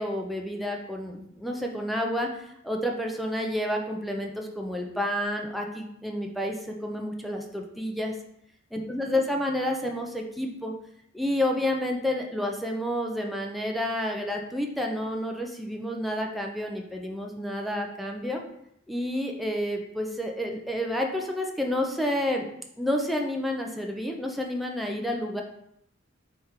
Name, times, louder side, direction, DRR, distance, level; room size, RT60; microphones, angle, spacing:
voice 1, 0.0-8.1 8.7-10.7 11.1-18.4 18.9-22.5 22.8-25.4, left 1 dB, ahead, 1 dB, 0.4 m, -30 dB
3.6 x 3.3 x 4.3 m, 0.75 s
head